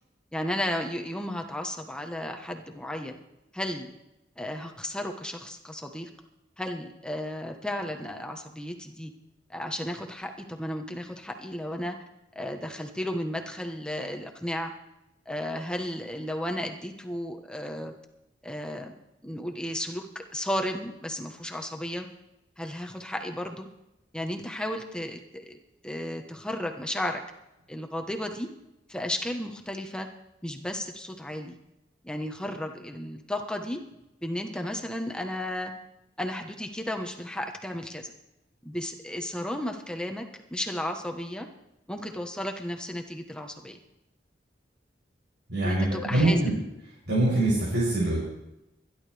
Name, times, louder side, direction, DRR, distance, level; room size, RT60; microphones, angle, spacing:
voice 1, 0.3-3.2 3.5-3.9 4.4-6.1 6.6-9.1 9.5-12.0 12.3-14.7 15.3-17.9 18.4-18.9 19.2-22.1 22.6-23.7 24.1-25.6 25.8-27.2 27.7-28.5 28.9-30.1 30.4-31.6 32.0-33.8 34.2-35.7 36.2-38.1 38.6-40.2 40.5-41.5 41.9-43.8 45.6-46.4, left 1 dB, 5° left, 3 dB, 1.2 m, -34 dB
voice 2, 45.5-46.6 47.1-48.2, right 1 dB, 80° right, -9 dB, 7.5 m, -24 dB
25.5 x 11.5 x 3.5 m, 0.90 s
head